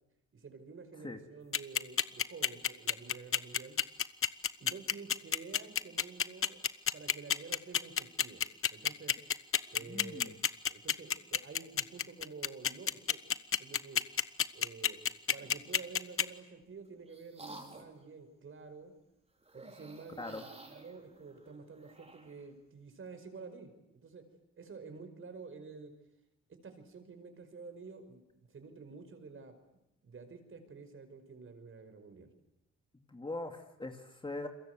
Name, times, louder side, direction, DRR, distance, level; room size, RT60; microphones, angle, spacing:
voice 1, 0.3-3.8 4.6-6.6 6.9-8.4 8.7-9.2 9.7-10.3 10.7-13.2 13.6-14.0 14.5-18.9 19.5-20.4 20.7-24.3 24.6-25.9 26.5-29.6 30.0-32.3, right 4 dB, 45° right, 8 dB, 5.3 m, -50 dB
sound 1, 1.5-16.2, left 8 dB, 45° left, 1.1 m, -29 dB
voice 2, 9.8-10.4 20.2-20.4 32.9-34.5, left 2 dB, 15° left, 5 dB, 2.6 m, -41 dB
sound 2, 15.3-15.9 16.6-18.0 19.4-22.5, right 2 dB, 20° right, 5.3 m, -53 dB
29.5 x 23.0 x 8.1 m, 0.86 s
cardioid pair, 90°, 30 cm